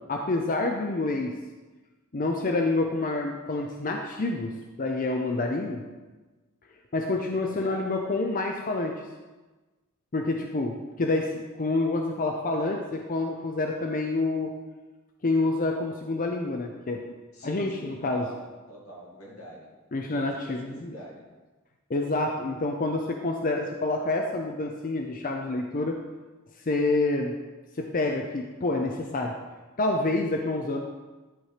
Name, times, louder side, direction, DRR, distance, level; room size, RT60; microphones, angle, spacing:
voice 1, 0.1-1.4 2.1-5.8 6.9-9.0 10.1-14.5 15.2-17.0 17.4-18.2 19.9-20.9 21.9-26.0 26.7-27.4 27.8-29.3 29.8-30.8, left 2 dB, 40° left, 3 dB, 0.6 m, -28 dB
voice 2, 7.4-8.0 17.3-19.7 20.1-21.3, equal, 85° left, -3 dB, 2.4 m, -45 dB
11.0 x 4.3 x 4.9 m, 1.2 s
head